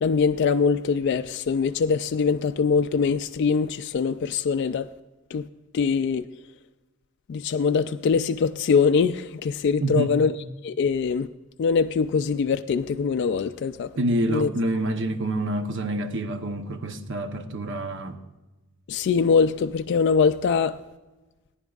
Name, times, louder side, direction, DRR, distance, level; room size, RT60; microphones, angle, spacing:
voice 1, 0.0-4.9 5.3-5.5 5.7-6.2 7.3-10.3 10.6-11.3 11.6-13.9 14.3-14.5 18.9-20.8, left 5 dB, 55° left, 0.3 m, -23 dB
voice 2, 9.8-10.2 14.0-18.2, right 1 dB, 60° right, 0.8 m, -27 dB
19.5 x 10.0 x 2.4 m
head